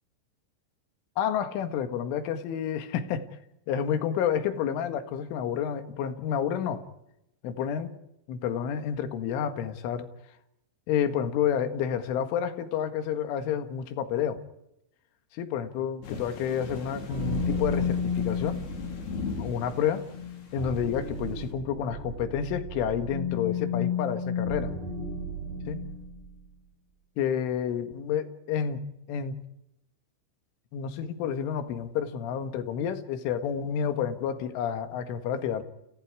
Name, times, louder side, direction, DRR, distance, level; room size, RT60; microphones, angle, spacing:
voice 1, 1.2-3.3 3.7-6.8 7.4-7.9 8.3-10.1 10.9-14.4 15.3-18.6 19.4-20.1 20.5-24.7 25.7-25.8 27.2-28.8 29.1-29.4 30.7-35.6, left 8 dB, 85° left, 9 dB, 4.2 m, -29 dB
sound 1, 16.0-21.5, left 4 dB, 60° left, 6.0 m, -39 dB
sound 2, 17.1-26.3, left 4 dB, 40° right, 9.3 m, -33 dB
30.0 x 29.0 x 4.8 m, 0.84 s
omnidirectional pair, 5.4 m